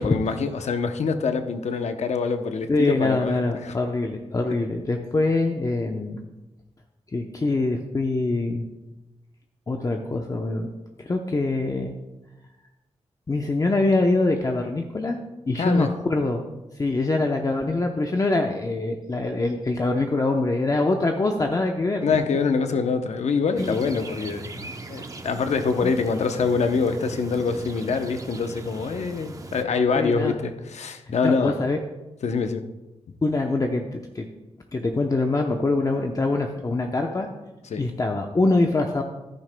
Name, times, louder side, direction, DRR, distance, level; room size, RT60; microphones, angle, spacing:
voice 1, 0.0-3.8 15.5-15.9 22.0-31.6 32.2-32.7 37.7-37.9, left 5 dB, 75° left, 8 dB, 0.8 m, -25 dB
voice 2, 2.7-6.2 7.1-8.7 9.7-10.7 11.0-11.9 13.3-15.2 15.5-16.4 16.8-22.2 23.6-23.7 25.8-25.9 30.0-30.4 31.2-31.8 33.2-34.3 34.7-37.3 37.8-39.0, left 2 dB, 30° left, 3 dB, 0.7 m, -24 dB
sound 1, 23.6-29.6, right 2 dB, 30° right, 0.8 m, -39 dB
14.0 x 11.0 x 2.2 m, 1.0 s
cardioid pair, 85°, 12 cm